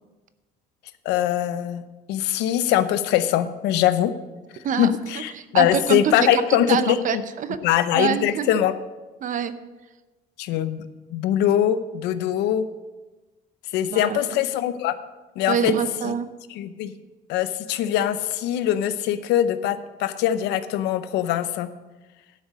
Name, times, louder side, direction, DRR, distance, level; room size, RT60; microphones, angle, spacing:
voice 1, 1.0-1.8 2.1-4.1 4.8-7.2 7.6-8.7 10.4-12.7 13.7-15.0 15.4-15.7 16.0-16.1 16.5-16.9 17.3-21.7, left 11 dB, 90° left, 12 dB, 0.7 m, -22 dB
voice 2, 4.6-6.4 6.7-7.6 7.9-8.6 9.2-9.6 13.9-14.4 15.5-16.3, right 8 dB, 50° right, 12 dB, 0.8 m, -26 dB
11.5 x 6.6 x 6.2 m, 1.2 s
cardioid pair, 110°, 17 cm